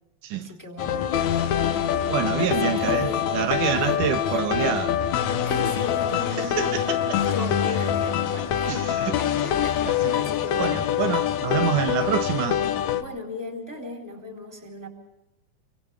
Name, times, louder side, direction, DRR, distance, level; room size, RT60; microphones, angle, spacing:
voice 1, 0.3-1.0 2.4-3.3 3.7-4.8 5.4-10.9 12.9-14.9, left 2 dB, 5° right, 3.6 m, -36 dB
sound 1, 0.8-13.0, left 9 dB, 70° left, 2.2 m, -25 dB
voice 2, 2.1-4.9 6.4-7.2 8.7-8.8 9.1-9.2 9.9-10.1 10.6-12.6, right 9 dB, 80° right, 2.4 m, -27 dB
29.5 x 25.0 x 3.5 m
omnidirectional pair, 3.6 m